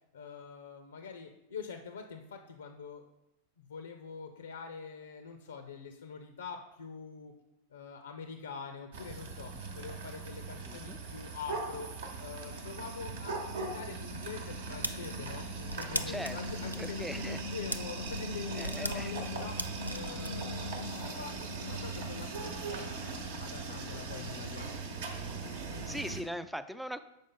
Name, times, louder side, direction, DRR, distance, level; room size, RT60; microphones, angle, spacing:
voice 1, 0.1-3.0 3.6-7.3 7.7-11.9 12.2-19.6 19.9-23.0 23.4-24.8, left 5 dB, 70° left, 7 dB, 0.5 m, -45 dB
sound 1, 8.9-26.2, right 2 dB, 60° right, 1.0 m, -39 dB
voice 2, 10.7-11.0 16.1-17.4 18.5-19.1 25.4-27.0, equal, ahead, 12 dB, 0.4 m, -41 dB
sound 2, 14.1-20.3, equal, 85° right, 0.4 m, -39 dB
7.1 x 5.1 x 3.9 m, 0.93 s
figure-of-eight pair, 90°, 0 cm